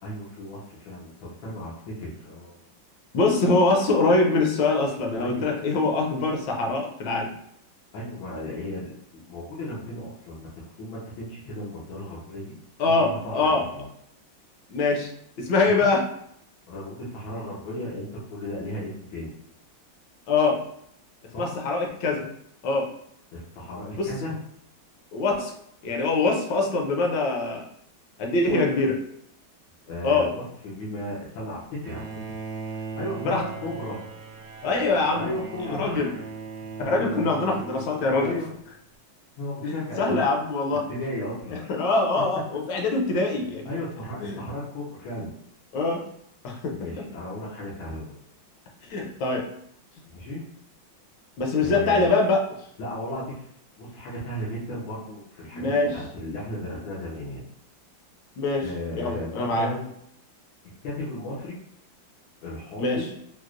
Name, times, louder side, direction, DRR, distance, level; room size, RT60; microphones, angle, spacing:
voice 1, 0.0-2.6 5.2-5.6 7.9-10.5 10.8-12.6 13.0-13.8 15.6-15.9 16.7-19.3 21.3-21.5 23.3-24.4 28.4-28.6 29.8-32.3 32.7-34.0 35.1-36.2 38.2-38.5 39.4-40.3 40.9-41.7 43.6-45.3 46.7-48.1 50.1-50.4 51.6-52.1 52.8-53.5 53.8-57.4 58.6-59.9 60.8-61.6 62.4-63.1, left 1 dB, 90° left, -6 dB, 1.7 m, -35 dB
voice 2, 3.1-7.3 12.8-13.6 14.7-15.1 15.4-16.0 20.3-20.6 21.4-22.3 22.6-22.9 24.0-24.1 25.1-25.5 25.8-27.6 28.2-28.9 30.0-30.3 33.2-33.4 34.6-35.3 35.6-36.1 36.9-38.3 40.0-40.8 41.7-43.7 44.2-44.4 45.7-46.0 46.4-46.7 48.9-49.5 51.4-52.4 55.5-55.9 58.4-58.7 58.9-59.7 62.8-63.1, left 3 dB, 75° left, 1 dB, 1.3 m, -23 dB
Bowed string instrument, 31.8-38.6, right 5 dB, 75° right, 0.9 m, -38 dB
4.5 x 2.0 x 2.4 m, 0.70 s
omnidirectional pair, 2.1 m